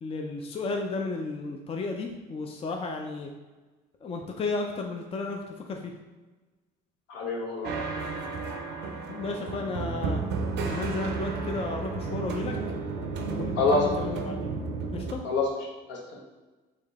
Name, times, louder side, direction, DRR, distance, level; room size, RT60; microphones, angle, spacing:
voice 1, 0.0-3.3 4.0-5.9 9.1-10.2 10.6-12.6 13.3-14.5 14.9-15.2, left 3 dB, 30° left, 3 dB, 0.5 m, -33 dB
voice 2, 7.1-7.8 13.6-14.1 15.2-15.4 15.9-16.2, left 3 dB, 70° left, -1 dB, 0.9 m, -26 dB
sound 1, 7.6-15.1, right 4 dB, 60° right, 0.6 m, -32 dB
3.6 x 2.7 x 3.5 m, 1.2 s
supercardioid pair, 75°, 19 cm